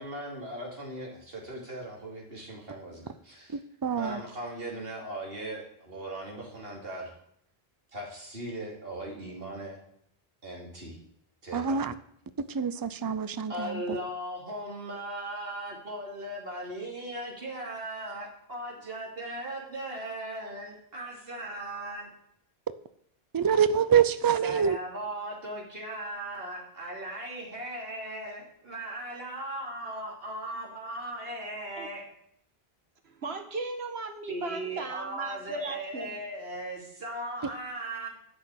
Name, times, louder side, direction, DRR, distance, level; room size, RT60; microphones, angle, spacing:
voice 1, 0.0-3.0 4.0-7.1 7.9-9.8 10.4-11.0 11.4-11.9 13.5-22.1 24.4-32.0 34.3-38.1, right 1 dB, 65° right, -2 dB, 3.2 m, -38 dB
voice 2, 3.8-4.2 11.5-11.9 12.5-14.0 23.3-24.8, right 7 dB, 30° right, 14 dB, 0.4 m, -25 dB
voice 3, 33.0-36.1, right 3 dB, 90° right, 6 dB, 1.7 m, -36 dB
10.5 x 6.4 x 8.4 m, 0.70 s
omnidirectional pair, 1.0 m